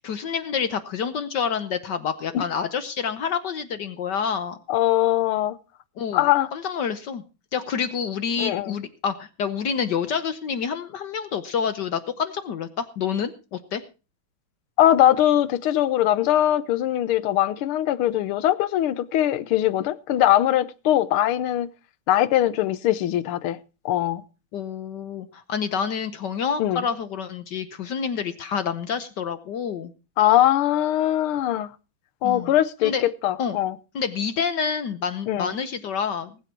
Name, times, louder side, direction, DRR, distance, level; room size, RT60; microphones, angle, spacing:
voice 1, 0.0-4.6 6.0-6.3 6.5-7.2 7.5-13.8 24.5-29.9 32.2-32.5 32.8-33.0 33.4-33.6 33.9-36.4, left 6 dB, 60° left, 1.4 m, -28 dB
voice 2, 4.7-5.6 6.1-6.5 8.4-8.8 14.8-21.7 22.1-23.6 23.8-24.2 26.6-26.8 30.2-31.7 32.2-33.8 35.3-35.6, left 12 dB, 90° left, 1.7 m, -21 dB
19.5 x 8.1 x 4.5 m
omnidirectional pair, 2.3 m